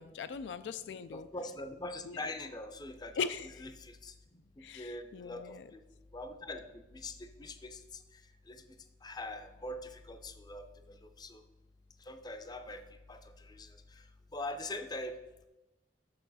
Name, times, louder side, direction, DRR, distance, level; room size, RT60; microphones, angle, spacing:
voice 1, 0.0-1.3 2.0-2.3 3.2-3.6 4.6-5.7, left 6 dB, 75° left, 12 dB, 0.3 m, -40 dB
voice 2, 1.1-3.2 3.8-4.1 4.8-5.8 6.1-7.1 7.4-7.8 8.5-8.6 9.0-10.7 11.2-11.4 12.1-12.8 13.1-13.2 13.5-13.7 14.3-15.2, left 2 dB, 25° left, 8 dB, 0.5 m, -42 dB
6.7 x 6.3 x 4.1 m, 1.0 s
head